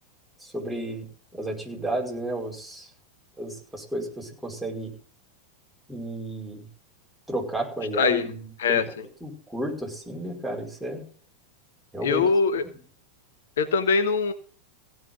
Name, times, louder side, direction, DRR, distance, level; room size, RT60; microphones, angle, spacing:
voice 1, 0.4-1.1 1.3-2.9 3.4-4.9 5.9-6.6 7.3-8.9 9.2-11.0 11.9-12.2, right 1 dB, ahead, -2 dB, 5.3 m, -32 dB
voice 2, 7.9-8.3 8.6-8.8 12.0-12.6 13.6-14.3, left 5 dB, 60° left, 9 dB, 1.2 m, -22 dB
16.5 x 6.0 x 8.0 m, 0.43 s
figure-of-eight pair, 90°, 0 cm